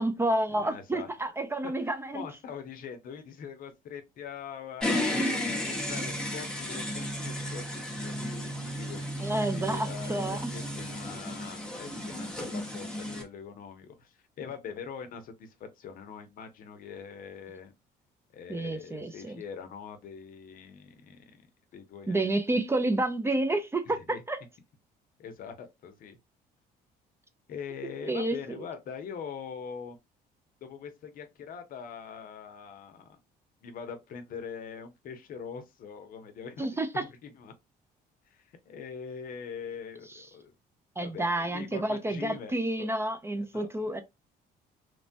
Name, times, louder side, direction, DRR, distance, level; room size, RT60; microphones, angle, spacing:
voice 1, 0.0-2.2 5.9-6.0 9.2-10.4 18.5-19.4 22.1-24.4 28.0-28.4 36.6-37.0 40.1-40.2 41.0-44.0, right 1 dB, 15° right, 0.4 m, -30 dB
voice 2, 0.5-1.3 1.6-4.9 5.5-17.7 18.3-21.4 21.7-22.6 23.9-24.2 25.2-26.2 27.5-30.0 30.6-33.2 33.6-36.7 36.9-37.5 38.3-40.5 41.0-42.9 43.5-44.0, left 6 dB, 55° left, 0.6 m, -43 dB
sound 1, 4.8-13.2, left 1 dB, 5° left, 0.8 m, -33 dB
3.0 x 2.2 x 2.6 m
cardioid pair, 110°, 17 cm